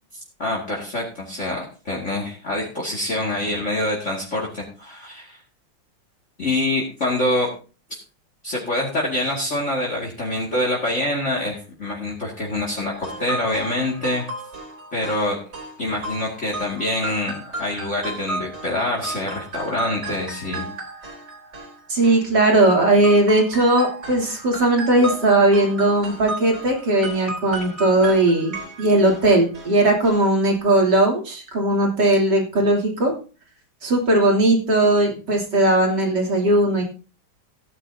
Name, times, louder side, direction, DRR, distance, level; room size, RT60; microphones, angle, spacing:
voice 1, 0.4-5.4 6.4-7.5 8.4-14.3 14.9-15.4 15.8-20.7, left 1 dB, 35° left, -2 dB, 2.5 m, -25 dB
sound 1, 12.9-22.7 23.0-29.7 30.0-30.2 30.5-30.6, right 2 dB, 30° right, 3.9 m, -34 dB
voice 2, 21.9-33.1 33.8-36.8, right 1 dB, 55° right, 0 dB, 3.7 m, -18 dB
17.5 x 9.8 x 2.8 m, 0.35 s
omnidirectional pair, 2.3 m